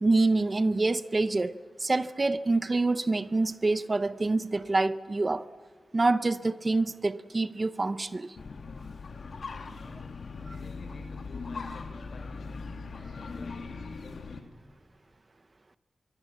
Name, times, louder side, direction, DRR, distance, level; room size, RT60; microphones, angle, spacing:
voice 1, 0.0-1.5 1.8-5.5 5.9-8.4 10.5-10.6, right 2 dB, 25° right, 0.6 m, -26 dB
sound 1, 8.4-14.4, left 4 dB, 60° left, 1.4 m, -40 dB
voice 2, 10.4-12.7 13.0-14.5, left 3 dB, 90° left, 5.5 m, -51 dB
25.5 x 23.5 x 7.3 m
wide cardioid pair, 175°, 0 cm